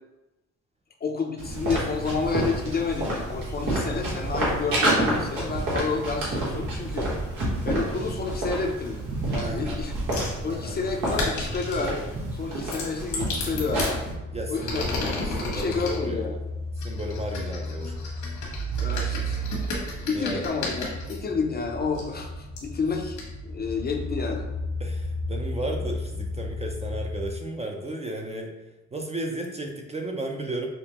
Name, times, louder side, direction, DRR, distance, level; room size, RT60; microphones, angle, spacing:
voice 1, 1.0-7.1 7.6-9.0 9.3-9.9 10.4-14.0 14.5-14.8 15.2-16.3 18.8-19.8 20.1-24.5, left 4 dB, 30° left, 2 dB, 0.5 m, -30 dB
sound 1, 1.4-14.1, right 1 dB, 90° right, 1.3 m, -29 dB
voice 2, 9.4-9.8 10.5-10.8 14.3-14.9 15.2-16.4 16.8-17.9 20.1-20.4 24.8-28.5 28.9-30.7, right 2 dB, 20° right, 1 dB, 0.5 m, -34 dB
sound 2, 10.1-10.4 11.0-11.9 12.6-13.9 14.5-16.0 16.8-21.1 21.9-22.0 22.6-22.7 23.2-23.3, left 3 dB, 80° left, 1.4 m, -33 dB
sound 3, 13.6-27.3, equal, 45° right, 1.0 m, -34 dB
5.1 x 2.1 x 2.9 m, 0.99 s
cardioid pair, 90°, 30 cm